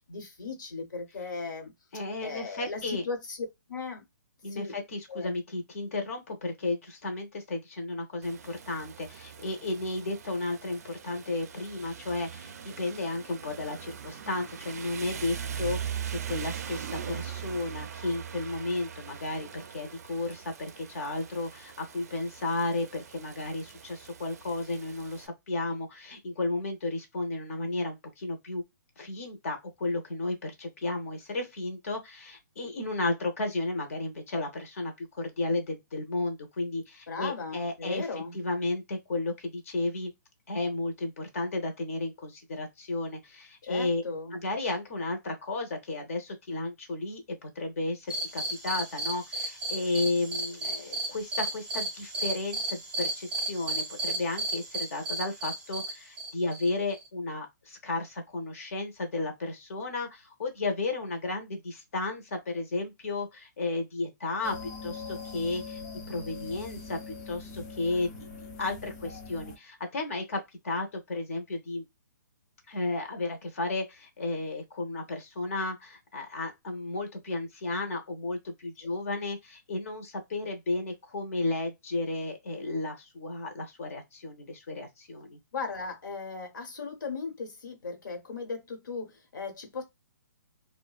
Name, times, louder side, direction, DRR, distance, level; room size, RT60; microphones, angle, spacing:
voice 1, 0.1-3.4 3.7-4.0 4.5-4.8 5.1-5.4 37.1-38.4 43.6-44.4 85.5-89.8, left 4 dB, 85° left, 1.1 m, -37 dB
voice 2, 1.9-3.0 4.4-28.6 29.0-38.1 38.3-40.1 40.5-44.0 44.3-65.8 66.1-68.3 68.6-71.8 72.7-85.4, left 2 dB, 45° left, 0.7 m, -33 dB
Rain, 8.2-25.3, right 8 dB, 55° right, 0.4 m, -41 dB
sound 1, 48.1-57.1, right 2 dB, 5° right, 0.7 m, -34 dB
sound 2, 64.4-69.6, left 4 dB, 20° left, 0.3 m, -42 dB
2.5 x 2.1 x 2.3 m
hypercardioid pair, 170°, 10 cm